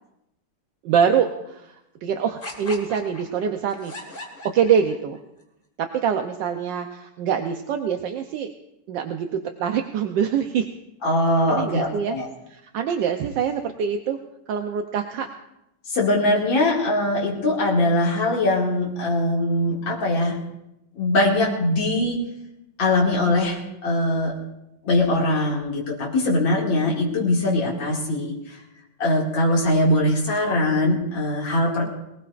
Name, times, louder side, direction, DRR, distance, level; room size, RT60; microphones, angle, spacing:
voice 1, 0.8-1.6 2.0-5.2 5.8-8.5 8.9-10.7 11.5-12.1 12.5-14.2 14.5-15.3 31.8-31.9, right 7 dB, 75° right, 5 dB, 1.4 m, -24 dB
sound 1, 2.4-5.2, left 1 dB, 30° left, 1.9 m, -38 dB
voice 2, 11.0-12.3 15.9-20.4 21.0-22.2 22.8-24.3 24.8-28.3 29.0-31.9, left 1 dB, 80° left, -4 dB, 3.0 m, -21 dB
23.5 x 18.5 x 2.5 m, 0.86 s
omnidirectional pair, 2.0 m